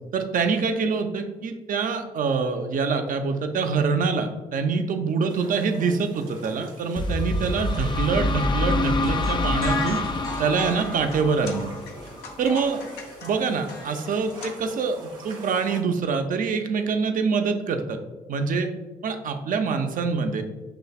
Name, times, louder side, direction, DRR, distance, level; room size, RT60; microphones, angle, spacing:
voice 1, 0.1-10.0 10.4-11.7 12.4-12.8 13.2-18.0 18.3-18.7 19.0-20.4, right 5 dB, 50° right, 6 dB, 0.6 m, -25 dB
sound 1, 5.3-15.8, right 2 dB, 85° right, 0.7 m, -44 dB
sound 2, 7.0-12.6, left 2 dB, 25° left, 0.5 m, -26 dB
sound 3, 9.2-14.5, left 3 dB, 70° left, 0.6 m, -38 dB
6.8 x 3.2 x 2.3 m, 1.2 s
figure-of-eight pair, 40°, 18 cm